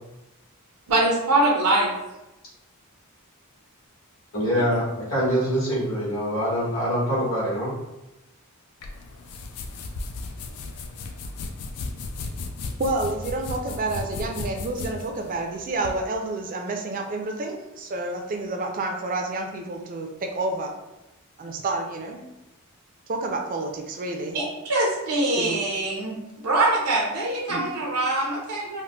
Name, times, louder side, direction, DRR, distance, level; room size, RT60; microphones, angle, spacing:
voice 1, 0.9-1.9 4.5-4.8 24.3-28.8, right 2 dB, 85° right, -2 dB, 0.6 m, -23 dB
voice 2, 4.3-7.7, equal, 65° left, -8 dB, 1.4 m, -24 dB
sound 1, 8.8-16.0, left 3 dB, 80° left, 0.3 m, -35 dB
voice 3, 12.8-20.7 21.4-22.2 23.1-24.4 25.4-25.6 27.5-27.6, right 2 dB, 40° right, 3 dB, 0.4 m, -29 dB
3.7 x 2.0 x 2.2 m, 0.96 s
head